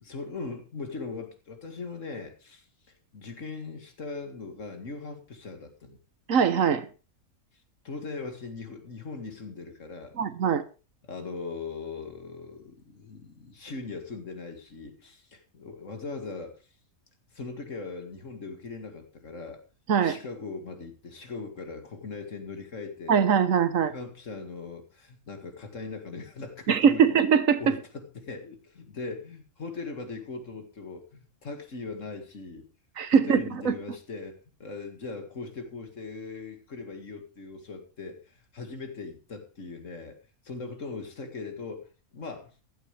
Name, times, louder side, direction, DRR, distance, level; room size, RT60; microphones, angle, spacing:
voice 1, 0.0-2.6 3.1-6.0 7.8-10.1 11.0-16.6 17.3-19.6 20.0-23.2 23.9-27.2 27.6-32.7 33.1-40.2 40.4-41.9 42.1-42.5, left 4 dB, 60° left, 2.3 m, -39 dB
voice 2, 6.3-6.9 10.2-10.6 19.9-20.2 23.1-23.9 26.7-27.7 33.0-33.7, right 7 dB, 65° right, 1.4 m, -22 dB
15.0 x 12.0 x 3.3 m
omnidirectional pair, 1.5 m